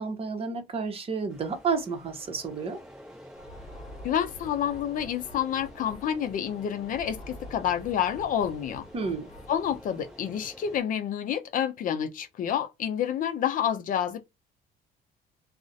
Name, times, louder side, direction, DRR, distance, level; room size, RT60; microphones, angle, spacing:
voice 1, 0.0-2.8 8.9-9.3, right 5 dB, 35° right, 0.7 m, -31 dB
sound 1, 1.3-10.8, equal, 5° right, 0.9 m, -49 dB
sound 2, 3.3-10.2, left 1 dB, 30° left, 1.0 m, -47 dB
voice 2, 4.0-8.9 9.5-14.2, left 9 dB, 55° left, 0.4 m, -29 dB
2.4 x 2.0 x 2.6 m
cardioid pair, 110°, 17 cm